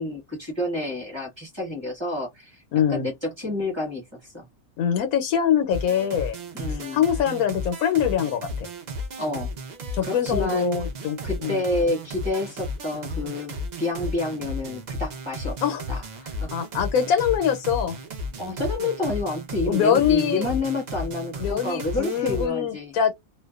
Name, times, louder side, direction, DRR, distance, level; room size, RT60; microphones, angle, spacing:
voice 1, 0.0-2.6 2.9-4.4 6.5-7.1 9.2-9.5 9.8-10.8 11.2-15.6 15.9-16.5 18.4-22.9, left 2 dB, 25° right, 0.8 m, -29 dB
voice 2, 2.7-3.0 4.8-6.4 6.9-8.7 10.0-11.2 11.4-11.6 15.6-15.8 16.5-18.0 19.6-20.5 21.4-23.1, left 8 dB, 85° left, 1.1 m, -23 dB
sound 1, 5.7-22.5, left 1 dB, 75° right, 0.4 m, -34 dB
2.5 x 2.1 x 2.3 m
omnidirectional pair, 1.5 m